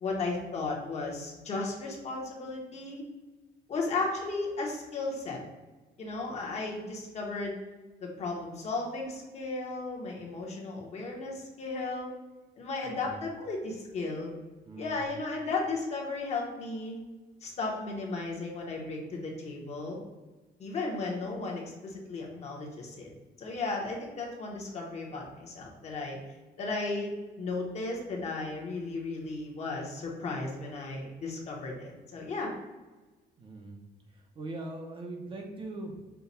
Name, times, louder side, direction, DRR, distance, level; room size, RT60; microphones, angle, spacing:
voice 1, 0.0-3.0 3.7-5.4 6.0-7.5 8.0-12.1 12.6-14.3 14.8-17.0 17.4-20.0 20.6-23.1 23.4-26.2 26.6-27.1 27.4-32.5, left 3 dB, 40° left, -1 dB, 1.0 m, -35 dB
voice 2, 12.6-13.2 14.6-15.2 33.4-33.8 34.1-36.1, right 2 dB, 30° right, 2 dB, 0.6 m, -42 dB
5.7 x 2.2 x 4.0 m, 1.2 s
cardioid pair, 165°, 17 cm